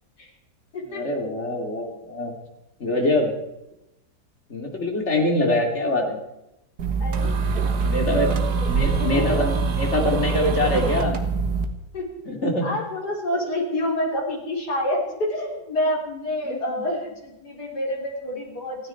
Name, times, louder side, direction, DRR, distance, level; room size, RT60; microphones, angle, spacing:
voice 1, 0.8-2.3 2.8-3.3 4.5-6.2 7.2-7.4 7.8-8.4 8.7-11.2 12.2-12.7 13.3-13.4 16.4-16.6, left 1 dB, 40° left, 2 dB, 2.9 m, -24 dB
sound 1, 6.8-11.6, right 5 dB, 70° right, 1.9 m, -24 dB
voice 2, 7.0-7.8 8.1-9.3 11.9-12.1 12.6-18.9, left 1 dB, 75° left, -1 dB, 4.3 m, -28 dB
29.0 x 9.7 x 4.5 m, 0.91 s
omnidirectional pair, 1.8 m